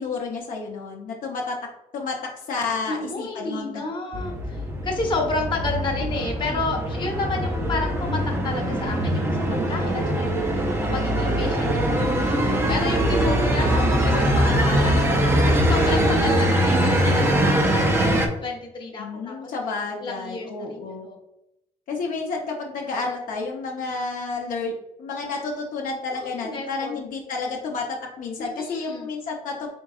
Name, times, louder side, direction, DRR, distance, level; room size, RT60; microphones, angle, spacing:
voice 1, 0.0-1.5 1.9-3.8 9.2-9.6 16.1-16.2 19.0-21.1 21.9-24.7 25.0-29.7, left 4 dB, 60° left, 0 dB, 0.7 m, -30 dB
voice 2, 2.9-15.1 15.4-18.1 18.4-19.4 20.0-21.2 26.1-27.0 28.4-29.1, left 3 dB, 30° left, 0 dB, 0.9 m, -31 dB
sound 1, 4.1-18.3, right 1 dB, 15° right, 0.5 m, -22 dB
4.5 x 3.8 x 2.3 m, 0.88 s
cardioid pair, 170°, 16 cm